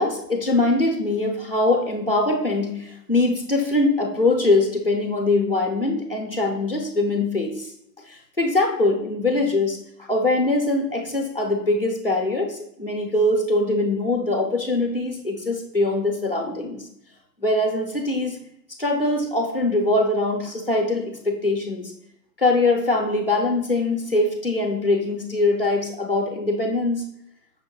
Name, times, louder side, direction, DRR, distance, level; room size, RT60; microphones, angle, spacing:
voice 1, 0.0-7.7 8.1-16.8 17.4-18.4 18.8-21.9 22.4-27.1, left 2 dB, 35° left, 1 dB, 0.5 m, -22 dB
5.9 x 2.1 x 3.6 m, 0.75 s
hypercardioid pair, 175°, 50 cm